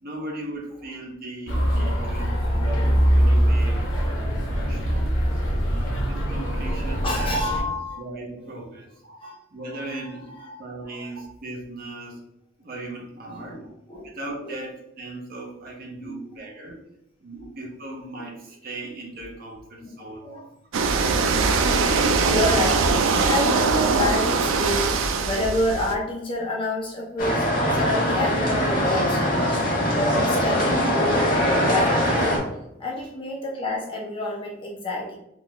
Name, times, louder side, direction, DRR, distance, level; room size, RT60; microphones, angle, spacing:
voice 1, 0.0-5.4 6.1-7.4 8.0-8.9 9.5-10.3 10.6-12.2 12.6-13.6 14.1-16.7 17.2-20.5, right 2 dB, 50° right, -1 dB, 0.8 m, -38 dB
sound 1, 1.5-7.6, equal, 80° left, 1.0 m, -22 dB
voice 2, 7.0-8.0 9.0-9.4 9.7-10.1 10.4-10.6 10.9-11.1 13.3-14.1 14.4-14.6 16.0-16.4 17.3-17.5 19.8-20.5 21.7-22.9 23.2-24.9 25.2-27.4 27.7-29.6 30.1-32.5 32.8-35.2, left 1 dB, 25° left, -2 dB, 0.6 m, -29 dB
sound 2, 20.7-25.9, right 4 dB, 80° right, 0.4 m, -21 dB
sound 3, 27.2-32.4, equal, 45° left, 1.2 m, -22 dB
3.8 x 2.3 x 3.0 m, 0.82 s
head